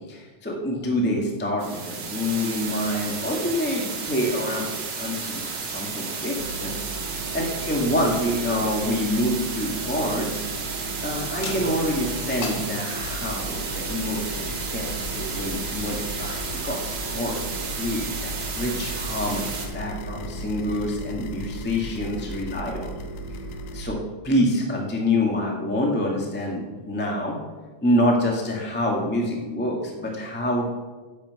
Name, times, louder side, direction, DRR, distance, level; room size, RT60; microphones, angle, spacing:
voice 1, 0.1-6.7 7.1-10.4 11.0-22.9 23.7-27.4 27.8-30.7, left 1 dB, 10° left, -1 dB, 0.6 m, -27 dB
sound 1, 1.6-19.7, right 5 dB, 80° right, 3.4 m, -32 dB
sound 2, 6.4-23.8, right 2 dB, 60° left, 2.4 m, -37 dB
sound 3, 13.0-23.9, left 3 dB, 80° left, 2.1 m, -39 dB
10.0 x 6.5 x 7.7 m, 1.3 s
omnidirectional pair, 3.5 m